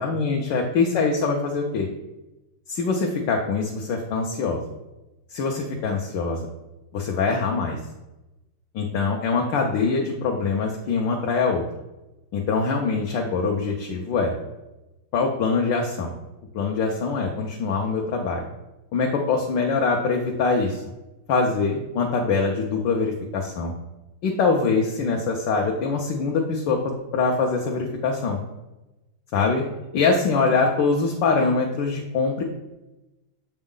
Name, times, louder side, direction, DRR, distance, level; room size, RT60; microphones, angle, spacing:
voice 1, 0.0-1.9 2.7-4.6 5.3-6.4 6.9-7.8 8.7-11.6 12.3-14.3 15.1-16.1 16.5-18.4 18.9-20.8 21.3-23.7 24.2-28.4 29.3-29.6 29.9-32.4, left 4 dB, 65° left, 0 dB, 1.2 m, -23 dB
6.9 x 5.3 x 3.7 m, 1.0 s
omnidirectional pair, 2.4 m